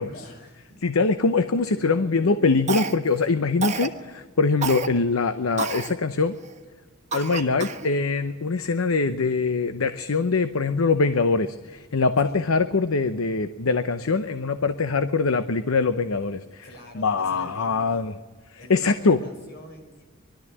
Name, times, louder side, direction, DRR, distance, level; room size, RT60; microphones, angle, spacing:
voice 1, 0.0-0.8 1.4-2.7 12.2-12.4 16.6-18.0 18.5-20.0, left 1 dB, 50° left, 3 dB, 5.0 m, -45 dB
voice 2, 0.8-6.3 7.1-16.7 16.9-18.1 18.7-19.2, left 4 dB, 90° left, 11 dB, 0.8 m, -23 dB
Cough, 2.7-3.2 3.6-4.0 4.6-4.9 5.6-5.9 6.4-6.5 7.1-7.9, right 4 dB, 35° right, 1.3 m, -29 dB
21.0 x 13.0 x 9.7 m, 1.4 s
head